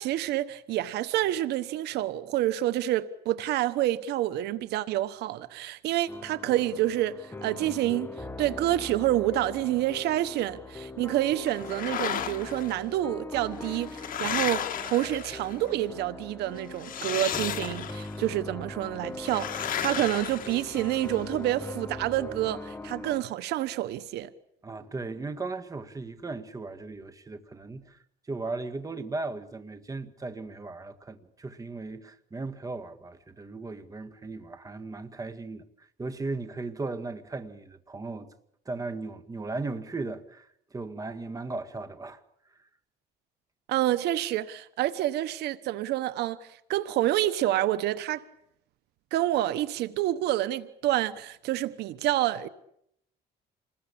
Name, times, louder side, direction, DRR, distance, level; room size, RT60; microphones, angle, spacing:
voice 1, 0.0-24.3 43.7-48.2 49.1-52.5, right 14 dB, 80° right, 1.2 m, -28 dB
sound 1, 6.1-23.2, left 2 dB, 15° left, 1.1 m, -41 dB
sound 2, 11.5-12.7 13.5-15.7 16.8-18.2 19.2-21.1, left 10 dB, 55° left, 2.0 m, -34 dB
voice 2, 24.6-28.0 28.3-38.3 38.7-42.2 42.6-42.7, right 3 dB, 20° right, 1.9 m, -37 dB
27.5 x 20.5 x 8.7 m
cardioid pair, 110°, 17 cm